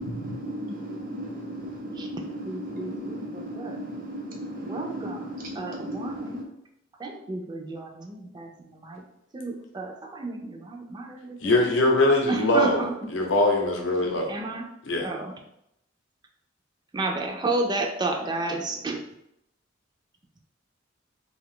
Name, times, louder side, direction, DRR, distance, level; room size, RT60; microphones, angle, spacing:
voice 1, 0.0-6.5, right 1 dB, 50° right, 0 dB, 0.7 m, -35 dB
voice 2, 2.4-3.8 4.6-6.4 7.0-9.0 9.3-11.4 12.3-12.9 14.3-14.6 15.0-15.3 16.9-19.0, right 2 dB, 25° right, 2 dB, 0.4 m, -32 dB
voice 3, 11.4-14.3 14.8-15.1, left 1 dB, 85° left, 1 dB, 0.6 m, -22 dB
2.7 x 2.3 x 3.6 m, 0.80 s
head